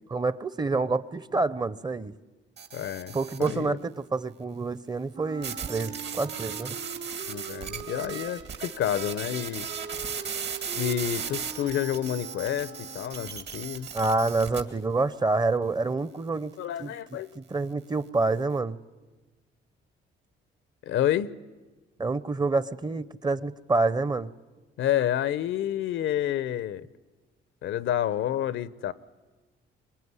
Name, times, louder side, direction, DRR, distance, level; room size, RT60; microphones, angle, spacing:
voice 1, 0.1-2.1 3.1-6.8 13.9-16.5 16.8-18.8 22.0-24.3, right 3 dB, 20° right, 0.8 m, -27 dB
sound 1, 2.6-3.6 5.4-14.6, right 7 dB, 60° right, 2.3 m, -37 dB
voice 2, 2.7-3.8 7.3-9.7 10.7-13.9 16.6-17.3 20.8-21.3 24.8-26.9 27.6-28.9, left 11 dB, 80° left, 0.8 m, -29 dB
Wind instrument woodwind instrument, 5.1-13.4, right 5 dB, 90° right, 3.5 m, -43 dB
24.5 x 20.5 x 9.7 m
cardioid pair, 90°, 20 cm